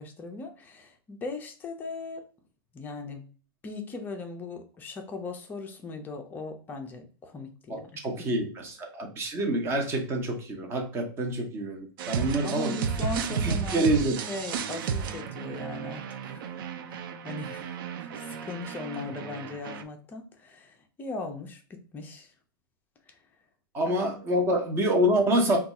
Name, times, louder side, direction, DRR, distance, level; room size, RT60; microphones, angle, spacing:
voice 1, 0.0-2.2 2.7-3.2 3.6-8.0 12.4-13.8 14.3-22.3 23.9-24.0, left 3 dB, 15° left, 4 dB, 0.5 m, -39 dB
voice 2, 7.7-12.7 13.4-14.1 23.7-25.6, right 1 dB, 20° right, 3 dB, 0.7 m, -27 dB
sound 1, 12.0-19.8, right 7 dB, 65° right, 0.4 m, -33 dB
2.6 x 2.3 x 4.0 m, 0.39 s
supercardioid pair, 150°, 12 cm